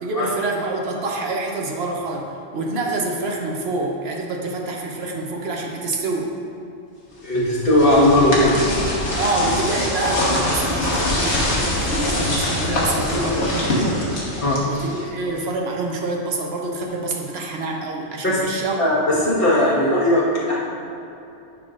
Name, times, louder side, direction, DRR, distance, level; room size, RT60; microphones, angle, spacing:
voice 1, 0.0-6.3 9.2-14.0 14.7-18.8, right 2 dB, 60° right, 0 dB, 1.1 m, -26 dB
voice 2, 7.2-8.5 14.4-14.5 18.2-18.4 18.8-20.6, left 1 dB, 50° left, -8 dB, 1.9 m, -17 dB
sound 1, 7.3-15.2, left 1 dB, 70° left, 1.7 m, -23 dB
10.5 x 5.8 x 2.5 m, 2.8 s
omnidirectional pair, 1.2 m